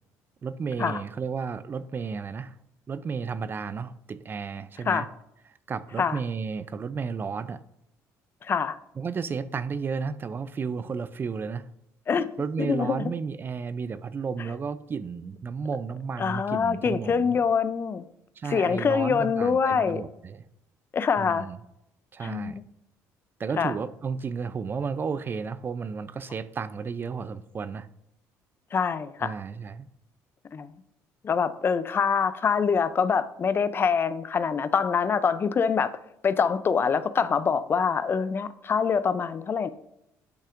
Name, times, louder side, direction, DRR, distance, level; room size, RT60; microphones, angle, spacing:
voice 1, 0.4-2.6 2.9-5.1 5.7-7.6 9.0-11.7 12.4-17.4 18.4-20.4 21.2-21.6 22.1-22.6 23.4-27.9 29.2-29.9, right 5 dB, 35° right, 0.4 m, -33 dB
voice 2, 8.4-8.8 12.1-12.3 12.6-13.1 16.2-18.0 18.5-20.0 20.9-21.5 22.2-22.6 23.6-23.7 28.7-29.3 30.5-30.7 31.2-35.9 36.2-39.7, left 6 dB, 35° left, 0.4 m, -25 dB
10.5 x 5.6 x 2.5 m
cardioid pair, 95°, 7 cm